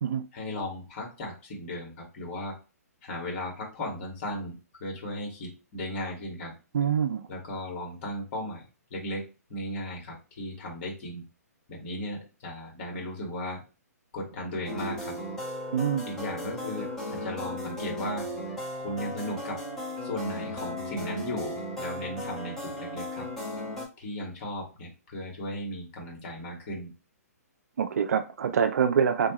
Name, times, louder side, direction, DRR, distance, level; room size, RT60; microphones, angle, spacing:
voice 1, 0.3-2.6 3.0-6.5 7.3-11.2 11.7-13.6 14.1-15.2 16.0-18.3 18.8-19.6 20.0-23.2 24.0-26.9, left 1 dB, 40° left, 1.5 m, -36 dB
voice 2, 6.7-7.3 15.7-16.1 27.8-29.3, right 7 dB, 70° right, 0.3 m, -25 dB
sound 1, 14.7-23.9, left 1 dB, 5° left, 1.2 m, -36 dB
2.7 x 2.3 x 2.9 m
hypercardioid pair, 135°, 9 cm